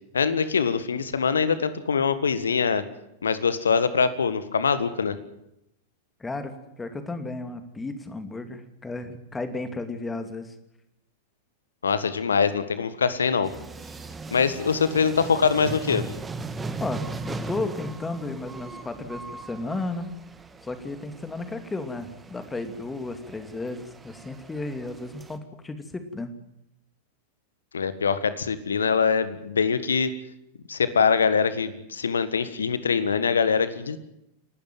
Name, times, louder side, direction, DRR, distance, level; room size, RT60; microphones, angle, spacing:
voice 1, 0.1-2.8 3.2-5.2 11.8-13.5 14.3-16.0 27.7-30.1 30.7-34.0, left 6 dB, 70° left, 13 dB, 1.6 m, -23 dB
voice 2, 6.2-10.5 16.8-20.1 20.6-26.3, left 2 dB, 10° left, 8 dB, 2.5 m, -34 dB
sound 1, 13.4-25.4, right 3 dB, 15° right, 1.8 m, -38 dB
28.5 x 12.0 x 9.3 m, 0.83 s
figure-of-eight pair, 90°, 0 cm